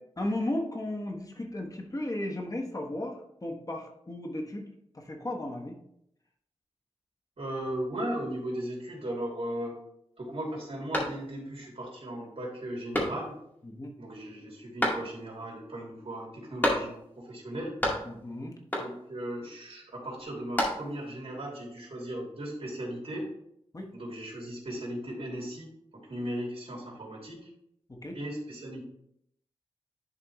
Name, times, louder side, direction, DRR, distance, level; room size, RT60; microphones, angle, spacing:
voice 1, 0.2-4.7 4.9-5.7 13.6-13.9 18.0-18.5 23.7-23.9 27.9-28.2, left 1 dB, 30° left, 1 dB, 1.1 m, -35 dB
voice 2, 7.4-9.8 10.2-13.3 14.0-17.8 18.8-23.3 23.9-27.5 28.1-28.8, right 1 dB, 60° right, -3 dB, 2.9 m, -37 dB
sound 1, 10.9-11.6 12.0-12.1 12.9-13.5 14.8-15.4 16.6-17.2 17.5-18.3 18.7-19.2 20.2-21.1, equal, 15° left, 2.0 m, -31 dB
11.0 x 4.1 x 3.1 m, 0.73 s
wide cardioid pair, 90°, 11 cm